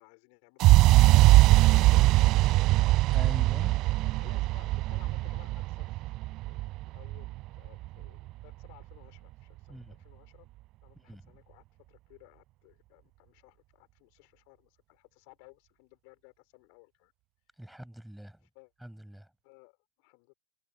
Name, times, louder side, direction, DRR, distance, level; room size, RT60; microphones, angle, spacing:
voice 1, 0.0-3.0 4.0-6.1 6.4-6.6 6.9-10.5 10.8-17.1 18.5-18.7 19.4-20.3, left 40 dB or more, 45° left, 5.6 m, -58 dB
sound 1, 0.6-8.5, right 18 dB, 40° right, 0.4 m, -22 dB
voice 2, 3.1-3.8 9.7-10.0 10.9-11.4 17.6-18.4 18.8-19.3, right 1 dB, ahead, 8.0 m, -43 dB
figure-of-eight pair, 90°, 0 cm